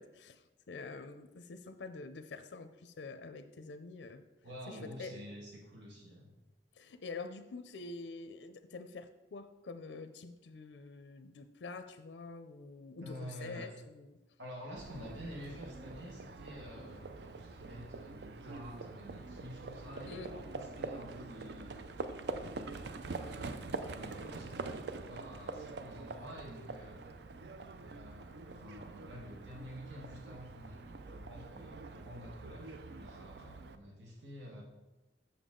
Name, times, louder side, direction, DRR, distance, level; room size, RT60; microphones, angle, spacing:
voice 1, 0.0-4.2 4.7-5.1 6.7-14.2 20.0-20.3, left 3 dB, 90° left, 10 dB, 0.5 m, -47 dB
voice 2, 4.4-6.3 13.0-13.7 14.4-21.7 22.3-27.0 27.8-34.6, equal, 85° right, -2 dB, 1.6 m, -49 dB
Livestock farm animals working animals, 14.8-33.7, right 3 dB, 70° right, 0.5 m, -45 dB
7.0 x 7.0 x 3.7 m, 1.0 s
head